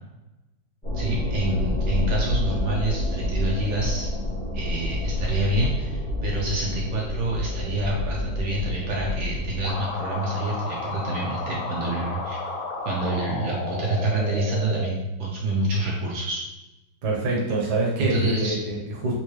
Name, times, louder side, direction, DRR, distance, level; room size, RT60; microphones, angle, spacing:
sound 1, 0.8-9.7, left 1 dB, 5° left, 0.6 m, -28 dB
voice 1, 0.9-4.1 4.5-12.6 12.8-16.4 18.0-18.6, right 2 dB, 75° right, -3 dB, 1.4 m, -27 dB
sound 2, 9.6-14.9, left 3 dB, 85° left, 1.5 m, -32 dB
voice 2, 17.0-19.2, right 2 dB, 60° right, -3 dB, 1.4 m, -25 dB
4.4 x 2.7 x 3.1 m, 0.98 s
omnidirectional pair, 2.1 m